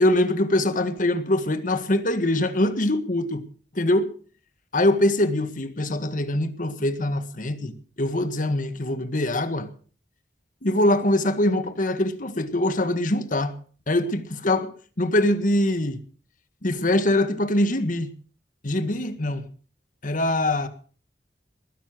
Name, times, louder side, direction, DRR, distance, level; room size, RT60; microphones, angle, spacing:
voice 1, 0.0-3.4 3.7-4.1 4.7-9.7 10.6-13.5 13.9-14.7 15.0-16.0 16.6-18.1 18.6-19.5 20.0-20.7, left 1 dB, 50° left, 1.7 m, -23 dB
20.5 x 10.0 x 6.1 m
head